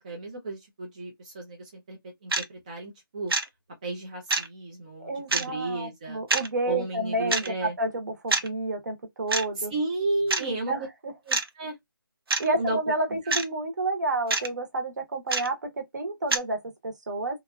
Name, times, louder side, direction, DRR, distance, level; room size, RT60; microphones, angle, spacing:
voice 1, 0.0-2.0 2.2-3.3 3.8-6.2 6.7-7.7 9.6-10.7 11.3-11.7 12.6-12.8, right 2 dB, 20° right, 0.5 m, -33 dB
sound 1, 2.3-2.4 3.3-3.4 4.3-4.5 5.3-5.4 6.3-6.5 7.3-7.5 8.3-8.5 9.3-9.4 10.3-10.5 11.3-11.5 12.3-12.5 13.3-13.4 14.3-14.5 15.3-15.5 16.3-16.4, right 3 dB, 90° right, 0.7 m, -25 dB
voice 2, 5.0-9.7 10.4-11.1 12.4-17.4, right 2 dB, 50° right, 1.0 m, -30 dB
2.8 x 2.4 x 2.2 m
hypercardioid pair, 170°, 12 cm